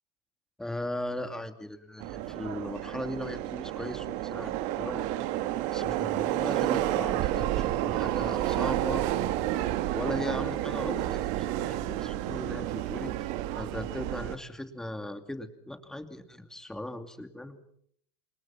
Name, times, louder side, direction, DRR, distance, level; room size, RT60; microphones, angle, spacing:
voice 1, 0.6-5.1 5.7-9.0 9.9-17.8, left 1 dB, 5° left, 8 dB, 2.5 m, -38 dB
Subway metro underground, 2.0-14.4, right 13 dB, 55° right, 1.9 m, -30 dB
29.5 x 27.0 x 5.9 m, 0.66 s
supercardioid pair, 150°, 14 cm